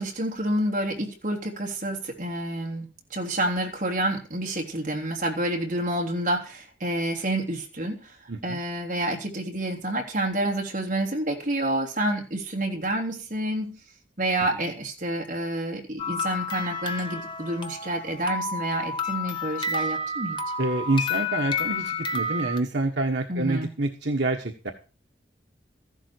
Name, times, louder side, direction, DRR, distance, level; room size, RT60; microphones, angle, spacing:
voice 1, 0.0-8.1 8.4-13.8 14.2-20.4 23.3-23.7, right 1 dB, 45° right, 1 dB, 3.3 m, -29 dB
voice 2, 8.3-8.6 20.6-24.7, right 2 dB, 75° right, 3 dB, 1.4 m, -27 dB
sound 1, 16.0-22.6, left 3 dB, 25° left, 1.1 m, -30 dB
14.5 x 11.5 x 4.6 m, 0.34 s
head